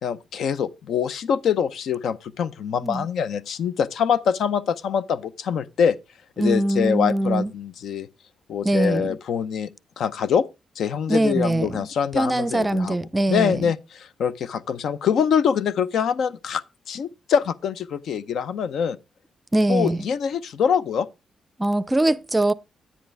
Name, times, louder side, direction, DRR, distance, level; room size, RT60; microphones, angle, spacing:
voice 1, 0.0-6.0 6.4-8.1 8.5-9.7 10.0-10.4 10.8-13.0 13.3-19.0 19.7-21.1, left 7 dB, 75° left, 0.7 m, -24 dB
voice 2, 6.4-7.5 8.6-9.1 11.1-11.9 12.1-13.6 19.5-20.0 21.6-22.5, right 1 dB, 15° right, 0.5 m, -22 dB
10.5 x 10.0 x 3.4 m
cardioid pair, 115°, 0 cm